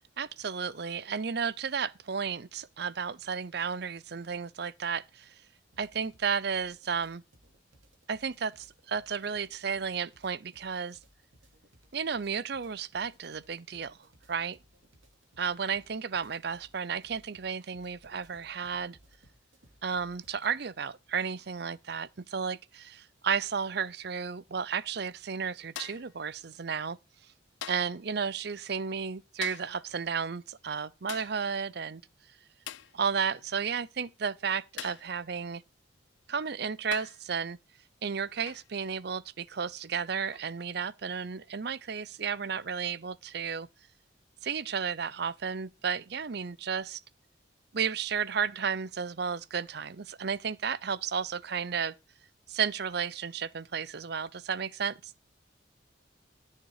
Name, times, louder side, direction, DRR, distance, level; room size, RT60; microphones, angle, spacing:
voice 1, 0.2-5.3 5.8-7.2 8.1-11.0 11.9-14.0 14.3-14.6 15.4-19.0 19.8-27.0 27.7-32.0 32.9-35.6 36.3-37.6 38.0-43.7 44.4-47.0 47.7-51.9 52.5-55.1, right 6 dB, 55° right, 0.6 m, -33 dB
sound 1, 5.7-20.6, right 1 dB, 80° right, 2.9 m, -62 dB
sound 2, 25.8-26.2 27.6-28.0 29.4-29.8 31.1-31.4 32.7-33.0 34.8-35.1 36.2-36.3 36.9-37.3 38.5-38.7 40.3-40.5, left 10 dB, 70° left, 0.5 m, -42 dB
13.5 x 6.6 x 4.8 m
head